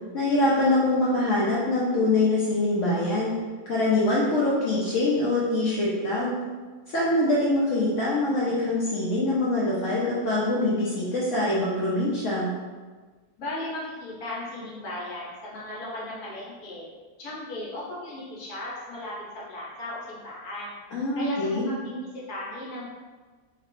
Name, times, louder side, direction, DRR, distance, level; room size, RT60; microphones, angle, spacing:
voice 1, 0.1-3.3 3.7-6.3 6.9-12.5 20.9-21.7, left 2 dB, 65° left, -7 dB, 0.9 m, -24 dB
voice 2, 13.4-16.9 17.2-20.7 21.1-22.9, left 1 dB, 85° left, -6 dB, 1.4 m, -36 dB
3.0 x 2.9 x 3.0 m, 1.4 s
omnidirectional pair, 1.6 m